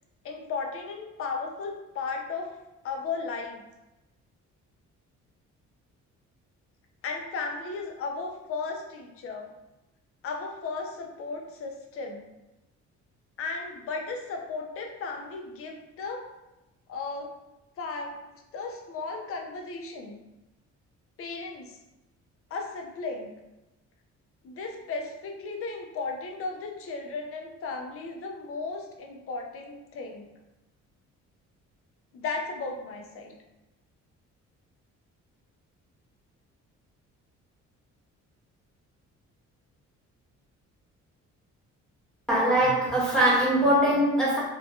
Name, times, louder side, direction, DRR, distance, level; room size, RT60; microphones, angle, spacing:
voice 1, 0.2-2.5 2.8-3.6 7.0-9.5 10.2-12.3 13.4-16.2 16.9-17.3 17.8-18.2 18.5-20.2 21.2-21.8 22.5-23.3 24.4-30.3 32.1-33.3, left 4 dB, 50° left, 2 dB, 0.5 m, -35 dB
voice 2, 42.3-44.4, right 1 dB, ahead, -7 dB, 0.6 m, -22 dB
3.1 x 2.3 x 2.3 m, 0.98 s
cardioid pair, 90°, 30 cm